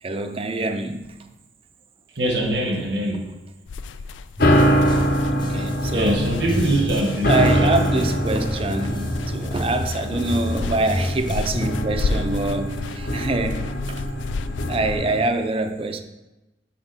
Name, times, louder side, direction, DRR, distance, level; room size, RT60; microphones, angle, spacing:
voice 1, 0.0-1.2 5.3-6.3 7.3-14.0 14.4-16.0, right 2 dB, 30° right, 8 dB, 0.5 m, -25 dB
voice 2, 2.1-3.3 5.9-7.9, right 1 dB, 75° right, 1 dB, 1.4 m, -23 dB
sound 1, 3.7-15.0, left 4 dB, 90° left, 0.3 m, -33 dB
sound 2, 4.4-15.2, equal, 55° left, 0.9 m, -24 dB
sound 3, 4.4-11.7, left 1 dB, 25° left, 0.8 m, -31 dB
5.9 x 4.7 x 5.6 m, 1.1 s
head